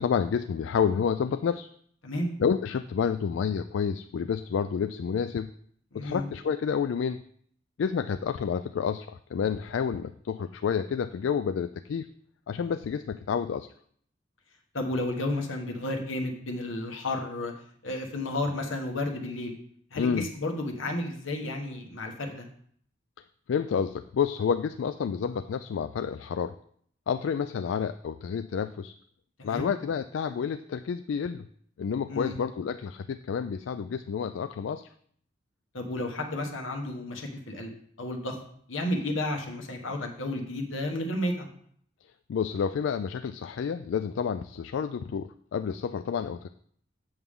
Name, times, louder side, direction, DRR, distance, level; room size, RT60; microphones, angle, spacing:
voice 1, 0.0-1.7 2.4-5.5 5.9-7.2 7.8-12.1 12.5-13.7 20.0-20.3 23.5-26.6 27.1-28.9 29.4-31.4 31.8-34.9 42.3-46.5, left 6 dB, 70° left, 11 dB, 0.3 m, -29 dB
voice 2, 5.9-6.2 14.7-17.5 17.8-19.5 19.9-22.5 29.4-29.7 32.1-32.4 35.7-37.7 38.0-38.4 38.7-41.5, left 1 dB, 90° left, 3 dB, 1.4 m, -32 dB
7.9 x 6.9 x 3.7 m, 0.62 s
head